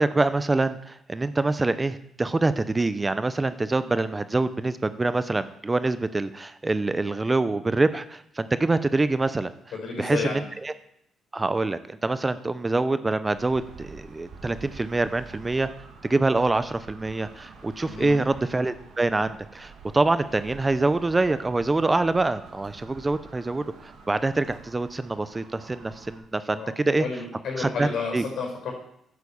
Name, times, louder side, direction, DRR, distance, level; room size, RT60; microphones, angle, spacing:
voice 1, 0.0-9.5 10.0-10.7 11.3-15.7 16.0-27.1 27.6-28.2, right 2 dB, 20° right, 13 dB, 0.6 m, -25 dB
voice 2, 9.7-10.4 17.8-18.2 26.5-26.7 27.0-28.7, left 5 dB, 70° left, 1 dB, 4.9 m, -31 dB
sound 1, 13.3-26.2, right 4 dB, 70° right, 2.3 m, -47 dB
10.0 x 8.1 x 7.1 m, 0.73 s
cardioid pair, 90°, 0 cm